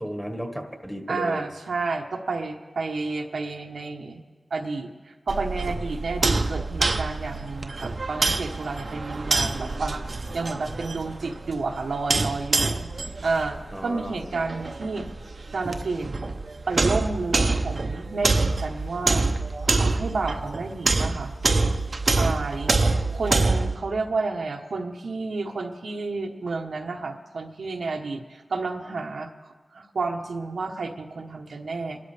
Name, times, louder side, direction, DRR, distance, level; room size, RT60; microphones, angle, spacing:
voice 1, 0.0-1.4 13.7-14.3, equal, ahead, 4 dB, 1.6 m, -34 dB
voice 2, 1.1-4.2 4.5-10.0 10.3-12.9 13.2-15.1 15.5-16.1 16.7-19.3 19.7-21.3 22.2-22.8 23.1-32.0, right 3 dB, 85° right, 2 dB, 1.1 m, -30 dB
sound 1, 5.3-23.8, right 3 dB, 55° right, 0.8 m, -26 dB
27.0 x 13.0 x 3.4 m, 1.3 s
wide cardioid pair, 80°, 0 cm